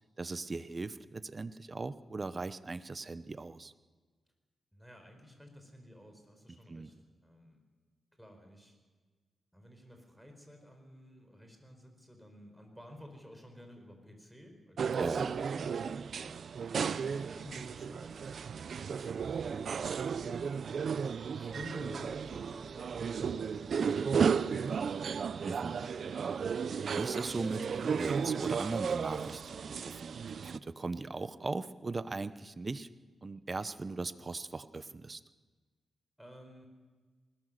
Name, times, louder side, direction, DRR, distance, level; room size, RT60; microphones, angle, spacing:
voice 1, 0.2-3.7 6.7-6.9 15.0-15.3 25.4-25.9 27.0-32.9 33.2-35.2, right 3 dB, 30° right, 14 dB, 0.8 m, -39 dB
voice 2, 4.7-6.9 7.2-7.6 8.2-8.8 9.5-16.3 17.1-18.4 19.0-20.9 21.3-23.4 23.8-25.2 36.2-36.7, equal, 5° right, 4 dB, 4.7 m, -53 dB
sound 1, 14.8-30.6, right 6 dB, 65° right, 0.6 m, -34 dB
20.5 x 20.0 x 6.6 m, 1.4 s
cardioid pair, 105°, 0 cm